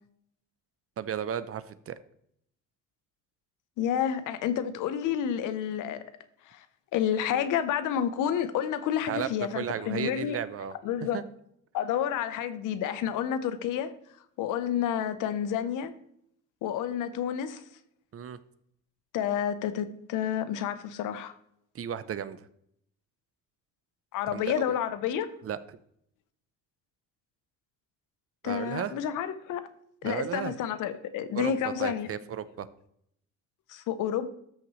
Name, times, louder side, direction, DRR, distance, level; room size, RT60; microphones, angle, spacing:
voice 1, 1.0-1.9 9.1-9.3 9.5-10.7 11.1-11.2 18.1-18.4 21.7-22.5 24.3-24.8 25.4-25.6 28.4-28.9 30.0-30.5 31.3-31.5 31.8-32.7, right 9 dB, 50° right, 0.7 m, -34 dB
voice 2, 3.8-6.0 6.5-6.7 6.9-10.4 10.8-11.2 11.7-13.9 14.4-15.9 16.6-17.6 19.1-21.4 24.1-25.3 28.4-29.7 30.0-32.1 33.7-34.3, left 9 dB, 90° left, 0.8 m, -30 dB
13.0 x 6.0 x 3.1 m
cardioid pair, 90°, 30 cm